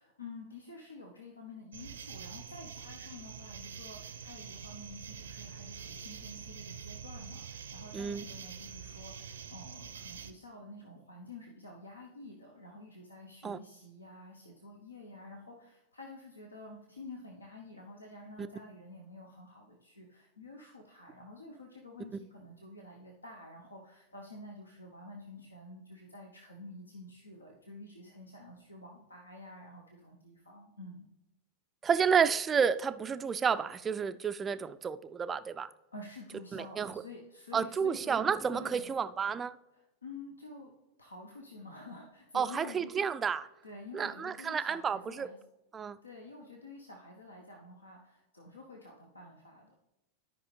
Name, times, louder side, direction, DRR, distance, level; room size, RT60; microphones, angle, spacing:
voice 1, 0.0-31.1 35.9-38.2 38.5-38.9 39.7-40.7 41.0-43.0 43.6-45.4 46.0-49.7, left 2 dB, 80° left, 1.0 m, -49 dB
sound 1, 1.7-10.3, right 7 dB, 70° right, 0.6 m, -46 dB
voice 2, 7.9-8.2 13.4-13.6 18.4-18.5 31.8-35.7 36.5-37.0 37.5-39.6 42.3-43.5 43.9-45.3 45.7-46.0, right 6 dB, 20° right, 0.4 m, -31 dB
13.0 x 5.3 x 3.3 m
figure-of-eight pair, 90°, 0 cm